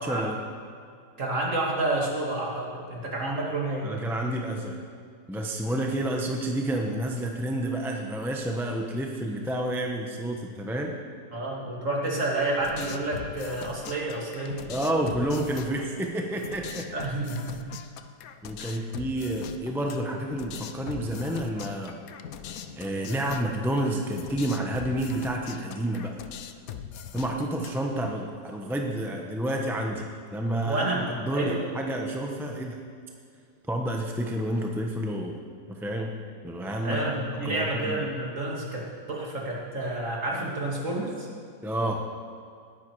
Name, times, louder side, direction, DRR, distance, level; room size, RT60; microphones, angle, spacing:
voice 1, 0.0-0.4 3.8-4.8 5.3-10.9 14.7-16.9 18.4-22.0 22.7-26.2 27.1-30.0 30.3-30.9 31.1-32.8 33.7-35.4 35.7-36.2 36.4-37.0 37.4-38.0 41.6-42.1, right 1 dB, ahead, 1 dB, 0.6 m, -29 dB
voice 2, 1.2-3.9 11.3-14.7 16.9-17.6 18.6-18.8 30.6-31.1 31.3-31.6 36.8-41.3, right 2 dB, 45° right, -3 dB, 2.6 m, -29 dB
sound 1, 12.6-28.1, left 8 dB, 65° left, 1.0 m, -41 dB
19.0 x 10.5 x 4.8 m, 2.3 s
omnidirectional pair, 1.9 m